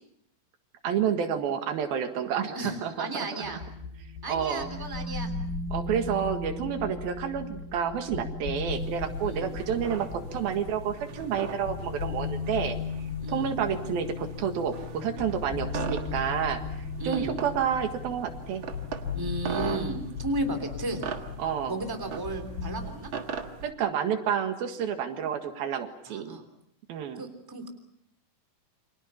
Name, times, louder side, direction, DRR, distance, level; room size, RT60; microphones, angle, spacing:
voice 1, 0.8-3.6 4.3-4.7 5.7-12.8 13.3-16.6 17.0-18.6 21.4-21.8 23.6-26.4 26.9-27.2, right 8 dB, 80° right, 6 dB, 3.6 m, -30 dB
voice 2, 2.5-3.6 4.2-5.3 9.2-9.5 13.2-13.5 17.0-17.3 19.1-21.0 21.7-23.1 26.1-26.4 27.2-27.7, right 2 dB, 5° right, 6 dB, 2.7 m, -34 dB
sound 1, 3.4-22.8, left 4 dB, 90° left, 5.9 m, -36 dB
sound 2, 8.7-23.7, right 5 dB, 45° right, 1.7 m, -40 dB
29.0 x 25.5 x 5.7 m, 0.72 s
omnidirectional pair, 4.2 m